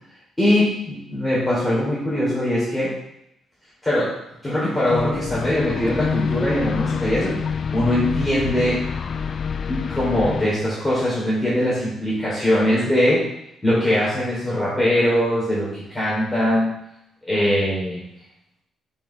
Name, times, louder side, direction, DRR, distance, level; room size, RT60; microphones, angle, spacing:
voice 1, 0.4-3.0 3.8-4.2 4.4-7.4 7.7-8.8 9.7-13.3 13.6-16.7 17.2-18.0, left 1 dB, 10° left, -8 dB, 3.5 m, -21 dB
sound 1, 4.9-10.5, left 6 dB, 50° left, 0.5 m, -27 dB
9.9 x 5.7 x 3.5 m, 0.80 s
cardioid pair, 90°, 0 cm